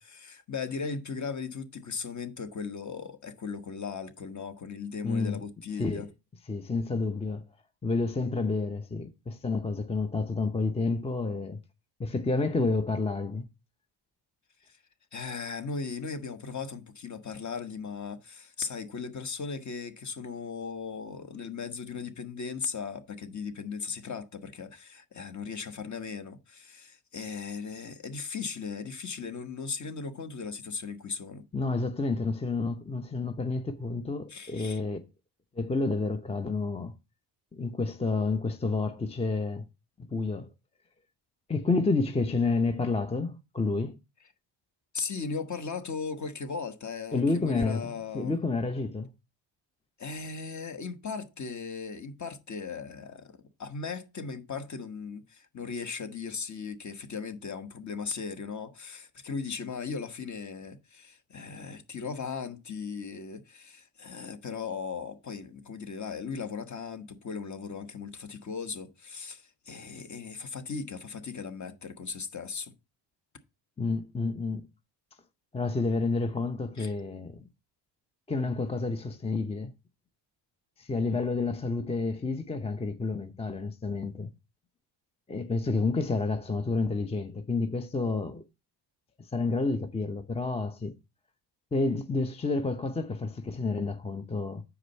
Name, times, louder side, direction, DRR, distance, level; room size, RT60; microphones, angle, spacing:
voice 1, 0.0-6.1 14.6-14.8 15.1-31.4 34.3-34.8 44.9-48.3 50.0-72.7 76.8-76.9, left 5 dB, 35° left, 1.3 m, -37 dB
voice 2, 5.0-5.4 5.8-6.1 6.5-7.4 7.8-11.6 12.0-13.5 31.5-35.0 35.6-36.9 37.5-39.7 40.0-40.5 41.5-44.0 47.1-49.1 73.8-74.7 75.5-77.5 78.3-79.7 80.8-84.3 85.3-88.4 89.2-90.9 91.7-94.6, left 3 dB, 15° left, 0.6 m, -29 dB
6.9 x 4.9 x 5.3 m
cardioid pair, 100°, 48 cm